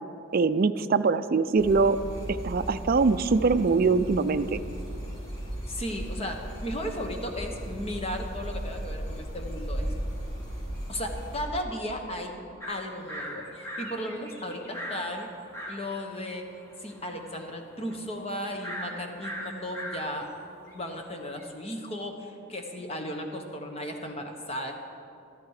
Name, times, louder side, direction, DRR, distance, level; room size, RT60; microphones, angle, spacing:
voice 1, 0.3-2.0 2.3-4.6, right 4 dB, 45° right, 11 dB, 0.4 m, -23 dB
sound 1, 1.6-11.4, right 1 dB, 45° left, 4.1 m, -36 dB
voice 2, 5.7-9.9 10.9-12.3 12.7-15.3 15.7-16.4 16.8-20.3 20.7-24.7, equal, 30° left, 3 dB, 1.3 m, -35 dB
sound 2, 12.6-21.4, equal, 15° left, 1.5 m, -40 dB
14.0 x 13.5 x 4.9 m, 2.6 s
head